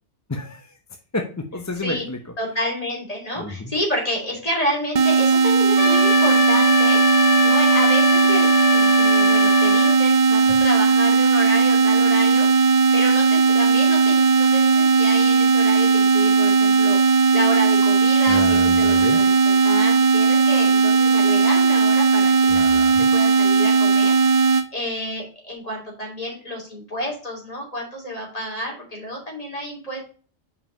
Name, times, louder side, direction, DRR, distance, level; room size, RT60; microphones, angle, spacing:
voice 1, 0.3-0.7 1.1-2.2 3.4-3.7 18.3-19.2 22.5-23.1, left 2 dB, 20° left, 4 dB, 0.6 m, -30 dB
voice 2, 2.4-7.0 7.4-17.0 17.3-22.8 23.1-30.0, equal, 35° left, -2 dB, 3.0 m, -30 dB
sound 1, 4.9-24.7, right 5 dB, 45° right, 0.6 m, -17 dB
Trumpet, 5.8-9.9, left 5 dB, 55° left, 1.9 m, -23 dB
5.5 x 5.1 x 5.3 m, 0.39 s
omnidirectional pair, 1.1 m